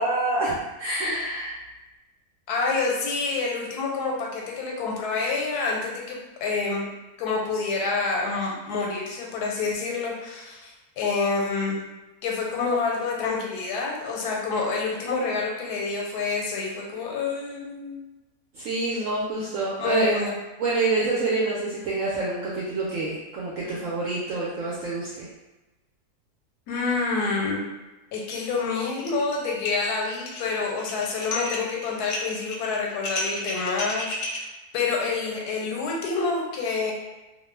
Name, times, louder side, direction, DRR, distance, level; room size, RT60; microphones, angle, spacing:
voice 1, 0.0-1.6 18.5-20.1 20.6-25.3, right 2 dB, 70° right, -6 dB, 0.9 m, -27 dB
voice 2, 2.5-6.9 7.2-11.8 12.2-18.1 18.9-19.0 19.8-20.4 26.7-27.6 28.1-34.4 34.7-36.9, left 4 dB, 85° left, -1 dB, 1.1 m, -27 dB
sound 1, 28.3-28.6 28.9-29.4 29.6-34.4, left 2 dB, 65° left, 0.8 m, -33 dB
2.5 x 2.1 x 3.1 m, 1.1 s
omnidirectional pair, 1.6 m